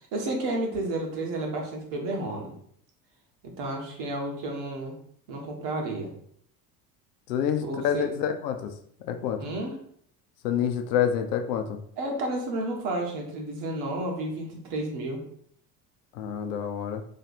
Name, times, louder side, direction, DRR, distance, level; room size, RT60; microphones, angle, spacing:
voice 1, 0.0-2.5 3.4-4.9 5.3-6.1 7.6-8.1 9.4-9.8 12.0-15.2, right 2 dB, 60° right, 0 dB, 1.4 m, -31 dB
voice 2, 7.3-8.7 9.1-9.4 10.4-11.8 16.1-17.0, left 8 dB, 80° left, 7 dB, 0.7 m, -27 dB
3.2 x 2.7 x 4.0 m, 0.64 s
hypercardioid pair, 70°, 47 cm